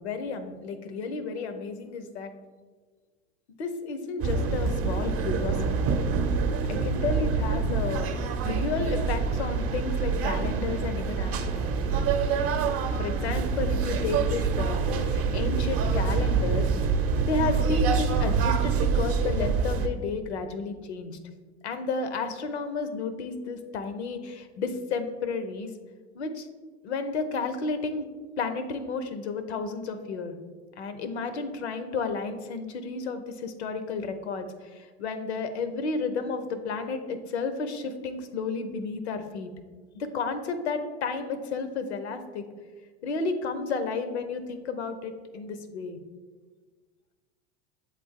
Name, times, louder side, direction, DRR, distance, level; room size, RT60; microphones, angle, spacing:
voice 1, 0.0-2.3 3.6-5.9 6.7-8.1 8.4-11.9 13.0-16.7 17.2-21.2 21.6-25.7 26.1-26.5 26.8-28.1 28.4-30.4 30.8-39.5 39.9-42.4 43.0-46.0, left 4 dB, 85° left, 9 dB, 0.7 m, -32 dB
sound 1, 4.2-19.9, right 5 dB, 50° right, 0.7 m, -26 dB
7.7 x 3.3 x 3.6 m, 1.4 s
hypercardioid pair, 100°, 32 cm